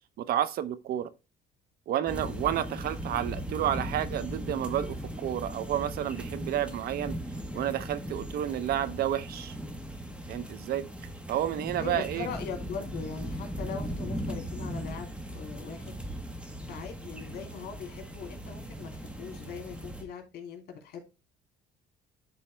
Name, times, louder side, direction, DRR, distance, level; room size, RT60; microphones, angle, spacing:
voice 1, 0.2-1.1 1.9-7.2 7.5-9.5 10.3-10.9 11.3-12.3, right 11 dB, 65° right, 0.7 m, -30 dB
sound 1, 2.1-20.0, equal, 5° right, 1.4 m, -38 dB
voice 2, 11.8-16.0 16.7-21.0, left 6 dB, 70° left, 3.0 m, -41 dB
11.5 x 4.2 x 3.3 m
cardioid pair, 110°, 17 cm